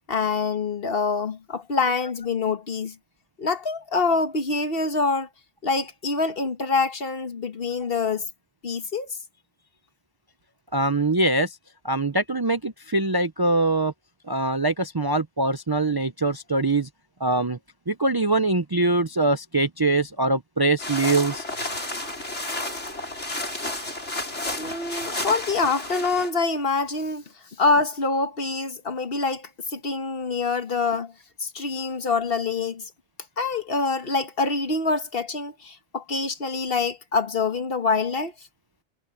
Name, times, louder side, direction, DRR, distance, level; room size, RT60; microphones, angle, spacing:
voice 1, 0.1-3.0 3.4-5.3 5.6-8.2 8.6-9.1 24.6-27.2 27.6-31.1 31.4-32.9 33.4-38.3, left 4 dB, 55° left, 1.6 m, -25 dB
voice 2, 10.7-11.6 11.8-13.9 14.3-16.9 17.2-17.6 17.9-21.4, right 2 dB, 25° right, 0.6 m, -23 dB
sound 1, 20.8-26.3, left 1 dB, 90° left, 6.8 m, -31 dB
omnidirectional pair, 1.2 m